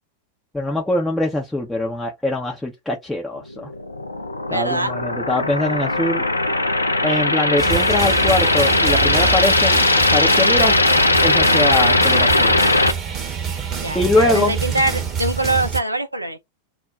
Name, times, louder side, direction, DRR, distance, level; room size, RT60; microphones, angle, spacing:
voice 1, 0.5-3.7 4.5-6.3 7.0-9.8 10.1-10.8 11.2-12.6 13.9-14.5, left 2 dB, 5° left, 0.5 m, -22 dB
sound 1, 3.7-12.9, left 2 dB, 80° left, 0.4 m, -18 dB
voice 2, 4.5-4.9 13.8-16.4, right 2 dB, 85° right, 0.5 m, -23 dB
sound 2, 7.6-15.8, right 7 dB, 30° right, 0.8 m, -26 dB
2.3 x 2.1 x 3.7 m
figure-of-eight pair, 90°, 0 cm